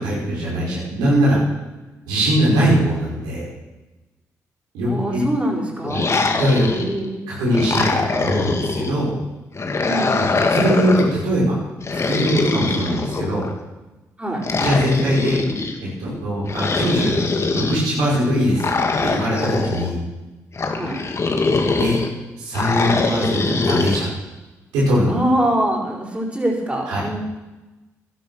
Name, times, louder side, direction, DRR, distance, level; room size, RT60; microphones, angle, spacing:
voice 1, 0.0-1.4 2.1-3.5 4.7-5.2 5.9-6.0 6.4-6.9 7.3-9.1 10.2-11.6 11.9-13.5 14.6-15.4 15.8-18.6 19.0-20.0 21.8-22.0 22.4-24.1 24.7-25.1 26.9-27.0, equal, 90° right, -6 dB, 5.5 m, -21 dB
voice 2, 4.8-6.1 6.7-7.3 9.8-10.2 14.2-14.4 20.7-21.0 25.1-27.2, right 1 dB, 20° right, -5 dB, 5.2 m, -23 dB
sound 1, 5.8-7.1 7.5-9.0 9.5-11.2 11.8-13.5 14.4-15.7 16.5-17.8 18.6-19.9 20.5-22.1 22.5-24.0, left 3 dB, 45° left, 2.1 m, -22 dB
13.0 x 12.0 x 6.4 m, 1.1 s
supercardioid pair, 55°, 7 cm